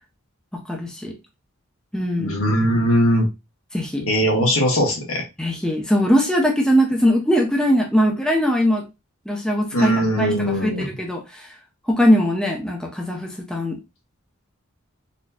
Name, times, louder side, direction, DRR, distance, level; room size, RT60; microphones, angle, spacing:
voice 1, 0.7-1.1 1.9-2.3 3.7-4.0 5.4-8.8 9.3-11.5 11.9-13.8, equal, 5° left, -1 dB, 0.7 m, -20 dB
voice 2, 2.1-3.3 4.0-5.2 9.7-10.9, equal, 75° left, 0 dB, 1.4 m, -20 dB
4.1 x 2.9 x 2.3 m, 0.24 s
head